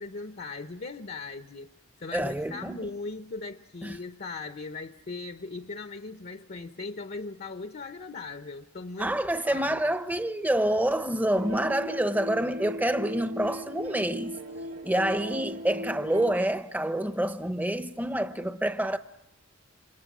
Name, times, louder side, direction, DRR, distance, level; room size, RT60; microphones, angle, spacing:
voice 1, 0.0-1.7 2.0-10.0, left 3 dB, 50° left, 0.8 m, -39 dB
voice 2, 2.1-2.8 3.8-4.0 9.0-14.4 14.8-19.0, right 1 dB, 10° right, 0.8 m, -27 dB
sound 1, 11.4-16.3, equal, 70° right, 2.7 m, -38 dB
29.0 x 26.0 x 6.1 m
head